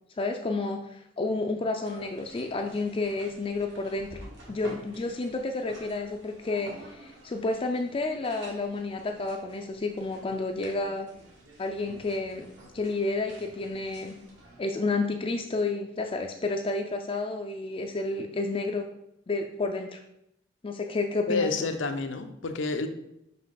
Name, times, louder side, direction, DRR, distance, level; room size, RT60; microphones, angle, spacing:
voice 1, 0.2-4.2 4.5-11.1 11.6-14.2 14.6-18.9 19.3-20.0 20.6-21.5, left 3 dB, 30° left, 3 dB, 0.4 m, -30 dB
sound 1, 1.8-14.6, right 1 dB, 65° right, 1.7 m, -50 dB
voice 2, 21.3-22.9, left 3 dB, 90° left, 7 dB, 0.7 m, -29 dB
5.6 x 5.4 x 3.8 m, 0.80 s
head